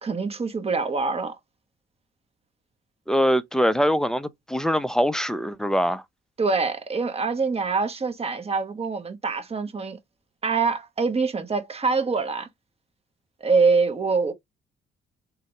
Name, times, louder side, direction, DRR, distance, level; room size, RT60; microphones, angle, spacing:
voice 1, 0.0-1.3 6.4-10.0 10.4-12.5 13.4-14.3, right 4 dB, 30° right, 0.9 m, -24 dB
voice 2, 3.1-6.0, equal, 5° left, 0.4 m, -23 dB
3.6 x 2.1 x 2.9 m
cardioid pair, 90°, 20 cm